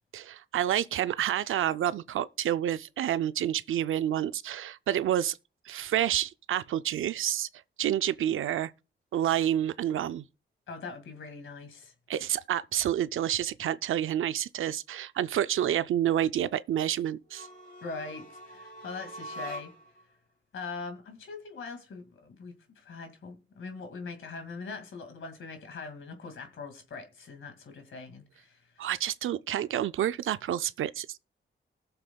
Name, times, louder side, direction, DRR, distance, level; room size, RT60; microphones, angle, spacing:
voice 1, 0.1-5.4 5.7-7.5 7.8-8.7 9.1-10.2 12.1-17.5 28.8-31.2, right 11 dB, 85° right, 0.4 m, -29 dB
voice 2, 10.7-11.9 17.8-19.7 20.5-28.9, left 4 dB, 80° left, 2.1 m, -42 dB
sound 1, 17.3-20.0, right 1 dB, 45° left, 3.3 m, -44 dB
20.0 x 6.8 x 2.3 m
cardioid pair, 90°, 20 cm